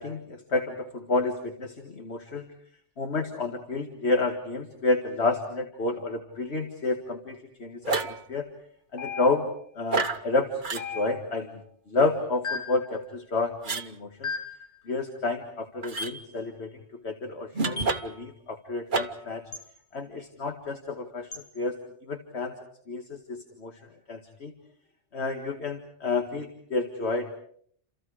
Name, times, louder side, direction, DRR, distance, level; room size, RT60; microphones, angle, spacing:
voice 1, 0.0-2.5 3.0-8.5 8.9-9.5 9.8-14.3 14.9-19.4 19.9-22.6 22.9-24.5 25.1-27.4, left 3 dB, 70° left, 4 dB, 2.1 m, -30 dB
sound 1, 7.8-8.2 9.9-10.2 10.6-10.9 13.6-13.9 15.8-16.1 17.5-18.2 18.9-19.3, right 4 dB, 45° right, 1.3 m, -29 dB
sound 2, 9.0-9.7 10.8-11.4 12.4-12.9 14.2-14.7 16.0-16.2 17.8-18.0 19.5-19.7 21.3-21.5, left 3 dB, 85° left, 2.9 m, -35 dB
29.0 x 28.0 x 5.0 m, 0.63 s
omnidirectional pair, 1.1 m